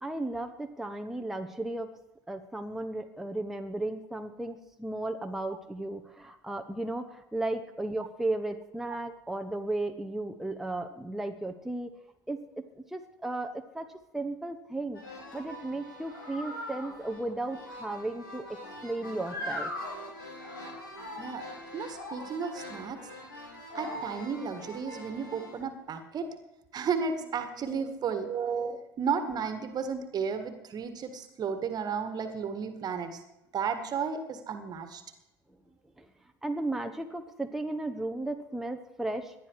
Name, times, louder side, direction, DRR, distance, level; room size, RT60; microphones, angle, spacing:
voice 1, 0.0-1.9 2.3-11.9 12.3-12.6 12.9-15.0 15.3-19.7 27.7-27.9 36.0-36.1 36.4-39.3, right 2 dB, 5° right, 5 dB, 1.2 m, -35 dB
sound 1, 14.9-25.6, left 1 dB, 75° left, 6.2 m, -41 dB
voice 2, 21.7-23.1 23.7-26.3 26.7-33.2 33.5-35.0, right 6 dB, 35° right, 9 dB, 1.9 m, -33 dB
19.0 x 12.0 x 4.8 m, 0.92 s
figure-of-eight pair, 70°, 11 cm